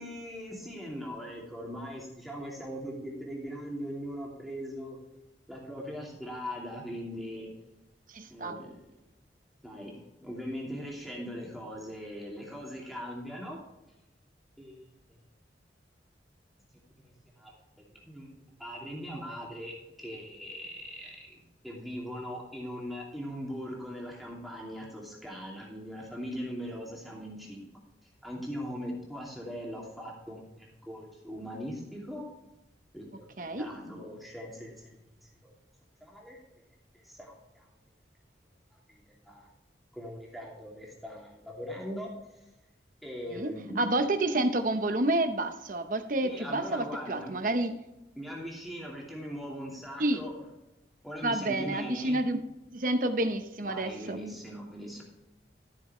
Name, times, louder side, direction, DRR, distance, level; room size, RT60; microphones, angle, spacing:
voice 1, 0.0-5.0 5.5-7.5 8.3-8.8 9.6-13.6 14.6-14.8 17.0-18.3 18.6-27.6 28.2-32.2 32.9-34.9 35.2-35.5 36.0-36.4 36.9-37.7 38.9-39.5 39.9-42.1 43.0-43.9 46.2-47.3 48.2-50.3 51.0-52.2 53.6-55.0, equal, ahead, -4 dB, 2.6 m, -40 dB
voice 2, 8.1-8.6 33.4-33.7 43.3-47.8 50.0-50.2 51.2-52.4 52.7-54.2, right 1 dB, 45° right, 7 dB, 0.9 m, -29 dB
14.0 x 7.1 x 3.2 m, 0.95 s
head